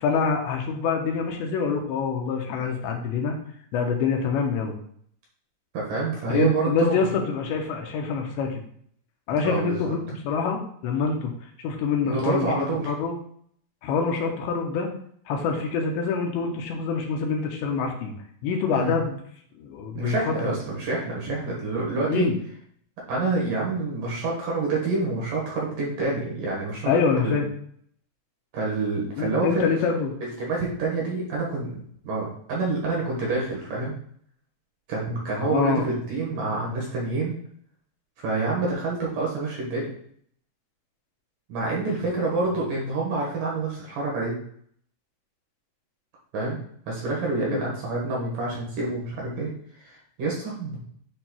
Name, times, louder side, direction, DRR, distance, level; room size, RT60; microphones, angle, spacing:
voice 1, 0.0-3.4 3.7-4.8 6.3-8.5 9.3-11.3 11.6-13.2 13.8-14.9 15.3-18.1 18.4-19.2 19.6-20.5 22.1-22.4 26.9-27.5 29.2-30.2 35.3-36.0 47.5-47.6, left 5 dB, 85° left, 2 dB, 3.1 m, -26 dB
voice 2, 5.7-7.0 9.4-10.0 12.0-12.9 18.7-19.0 19.9-22.3 23.1-27.4 28.5-29.6 30.2-31.7 32.0-33.9 34.9-37.4 38.2-39.9 41.5-44.4 46.3-46.6 46.9-49.5 49.8-50.8, right 3 dB, 60° right, -3 dB, 2.5 m, -27 dB
10.5 x 4.4 x 2.3 m, 0.63 s
omnidirectional pair, 5.1 m